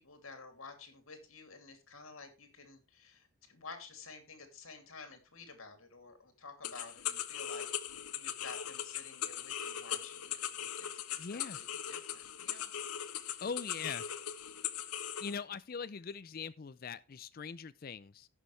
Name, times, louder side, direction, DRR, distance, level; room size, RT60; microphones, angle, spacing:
voice 1, 0.0-10.9 11.3-12.7, left 4 dB, 65° left, 2.7 m, -52 dB
sound 1, 6.6-15.3, left 10 dB, 90° left, 1.0 m, -40 dB
voice 2, 11.2-11.6 13.4-14.1 15.2-18.3, left 5 dB, 40° left, 0.4 m, -41 dB
16.5 x 6.3 x 3.3 m
head